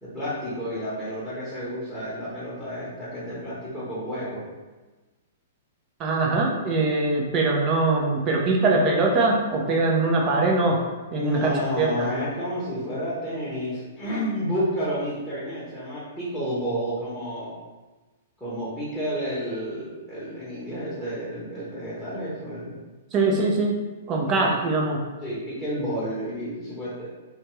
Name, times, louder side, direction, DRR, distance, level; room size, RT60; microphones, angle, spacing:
voice 1, 0.0-4.4 11.1-17.5 18.4-22.7 24.3-24.5 25.2-27.1, equal, 5° left, -11 dB, 0.9 m, -30 dB
voice 2, 6.0-10.8 11.1-12.1 23.1-23.7 24.1-25.0, right 3 dB, 30° right, 0 dB, 0.5 m, -22 dB
2.6 x 2.3 x 3.0 m, 1.2 s
figure-of-eight pair, 110°, 0 cm